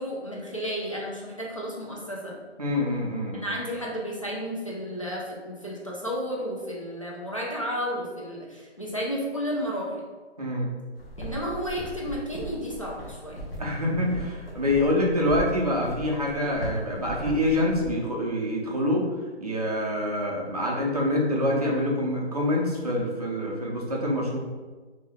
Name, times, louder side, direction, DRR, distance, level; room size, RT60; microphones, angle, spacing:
voice 1, 0.0-2.4 3.4-9.9 11.2-13.4, equal, 30° left, -4 dB, 0.4 m, -32 dB
voice 2, 2.6-3.5 10.4-10.7 13.6-19.1 19.4-24.4, left 1 dB, 35° right, -3 dB, 0.5 m, -26 dB
sound 1, 11.0-17.9, right 1 dB, 60° left, 0.8 m, -37 dB
2.7 x 2.2 x 3.3 m, 1.3 s
hypercardioid pair, 170°, 33 cm